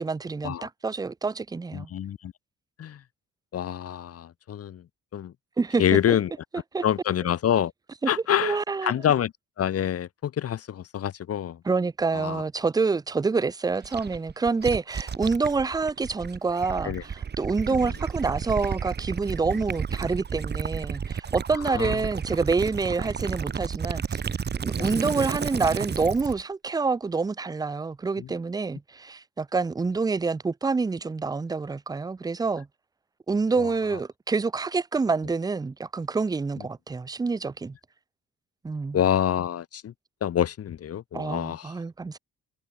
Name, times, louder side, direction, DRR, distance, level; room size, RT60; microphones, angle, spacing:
voice 1, 0.0-1.9 5.6-6.2 6.7-6.8 8.0-8.1 8.4-8.9 11.6-24.2 24.6-32.7 33.3-37.7 38.6-39.0 41.1-42.2, right 4 dB, 15° right, 0.4 m, -27 dB
voice 2, 1.7-2.3 2.8-3.0 3.5-4.8 5.1-5.3 5.8-6.3 6.8-7.7 8.1-9.3 9.6-11.6 12.1-12.4 16.8-17.0 21.7-22.0 24.8-25.0 28.2-28.3 33.5-33.7 38.9-39.9 40.2-41.7, left 10 dB, 50° left, 1.0 m, -26 dB
Gurgling / Liquid, 13.8-26.4, right 6 dB, 35° right, 1.1 m, -32 dB
cardioid pair, 90°, 30 cm